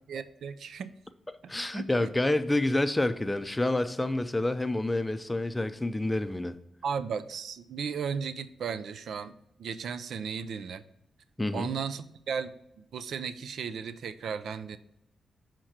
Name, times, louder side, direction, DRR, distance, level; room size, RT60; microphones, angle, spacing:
voice 1, 0.1-0.9 1.7-2.1 6.8-10.8 11.5-14.8, right 6 dB, 75° right, 13 dB, 0.4 m, -35 dB
voice 2, 1.5-6.5 11.4-11.7, left 2 dB, 15° left, 11 dB, 0.5 m, -28 dB
6.3 x 4.4 x 5.8 m, 0.78 s
cardioid pair, 80°, 0 cm